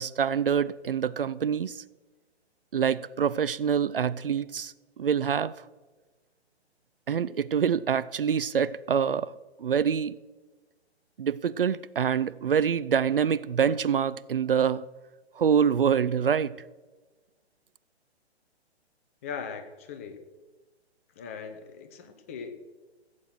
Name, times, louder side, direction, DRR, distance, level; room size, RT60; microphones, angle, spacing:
voice 1, 0.0-1.8 2.7-5.5 7.1-9.3 9.6-10.2 11.2-14.8 15.4-16.5, right 7 dB, 55° right, 0.4 m, -26 dB
voice 2, 19.2-20.2 21.2-22.5, left 6 dB, 15° left, 0.5 m, -39 dB
16.0 x 7.5 x 6.5 m
figure-of-eight pair, 125°, 33 cm